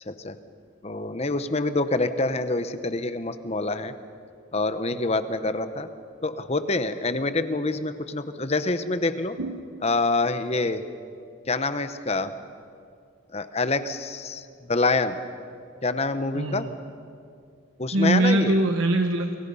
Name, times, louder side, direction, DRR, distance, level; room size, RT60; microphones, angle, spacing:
voice 1, 0.8-3.9 4.5-5.9 6.2-9.3 9.8-10.8 11.5-12.3 13.3-15.2 15.8-16.7 17.8-18.5, left 2 dB, 30° left, 11 dB, 0.9 m, -26 dB
voice 2, 9.4-9.7 16.3-16.7 17.9-19.4, right 2 dB, 85° right, 5 dB, 1.2 m, -23 dB
30.0 x 23.0 x 5.6 m, 2.3 s
head